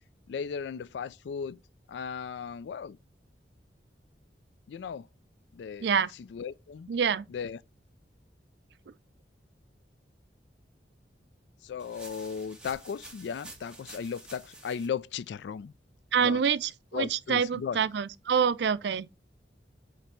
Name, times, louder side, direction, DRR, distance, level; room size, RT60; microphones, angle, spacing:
voice 1, 0.3-1.6 1.9-3.0 4.7-5.1 5.5-5.9 6.2-6.9 7.3-7.6 11.6-15.7 16.2-16.4 16.9-17.8, left 6 dB, 80° left, 0.3 m, -36 dB
voice 2, 5.8-6.1 6.9-7.2 16.1-19.1, right 7 dB, 75° right, 0.4 m, -26 dB
sound 1, 11.8-14.9, right 2 dB, 5° right, 1.5 m, -49 dB
7.7 x 3.3 x 4.5 m
head